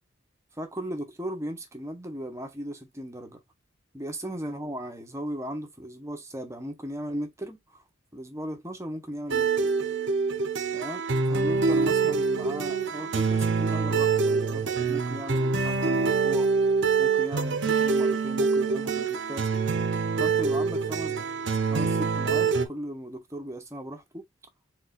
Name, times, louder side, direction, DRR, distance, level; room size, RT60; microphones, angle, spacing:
voice 1, 0.5-3.4 3.9-7.8 8.1-9.7 10.7-16.7 17.0-19.5 20.2-24.2, equal, 15° right, 0.8 m, -37 dB
sound 1, 9.3-22.7, right 5 dB, 60° right, 0.8 m, -25 dB
4.7 x 3.8 x 2.5 m
head